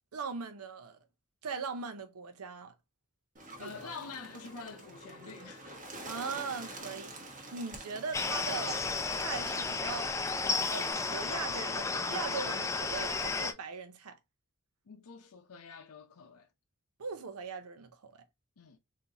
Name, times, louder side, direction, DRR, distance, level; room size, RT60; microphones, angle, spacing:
voice 1, 0.1-1.0 1.4-2.7 3.6-3.9 6.1-8.8 9.1-10.1 10.7-14.2 17.0-18.2, right 5 dB, 80° right, 0.6 m, -40 dB
Bird, 3.4-10.9, right 2 dB, 35° right, 1.0 m, -47 dB
voice 2, 3.6-5.8 14.9-16.5 18.6-18.8, left 5 dB, 90° left, 0.6 m, -47 dB
sound 1, 8.1-13.5, left 4 dB, 15° left, 0.4 m, -33 dB
3.8 x 2.7 x 2.7 m
head